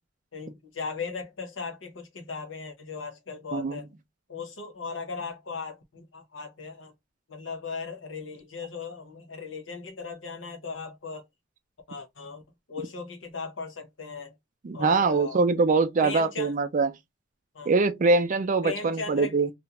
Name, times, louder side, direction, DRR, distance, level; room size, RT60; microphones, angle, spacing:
voice 1, 0.3-3.9 4.3-6.9 7.3-11.2 11.9-12.4 12.7-14.3 14.7-15.4 16.0-16.6 17.5-17.7 18.6-19.3, left 4 dB, 75° left, 0.9 m, -37 dB
voice 2, 14.6-16.9 17.7-19.5, right 3 dB, 40° right, 0.4 m, -23 dB
2.4 x 2.2 x 2.9 m
head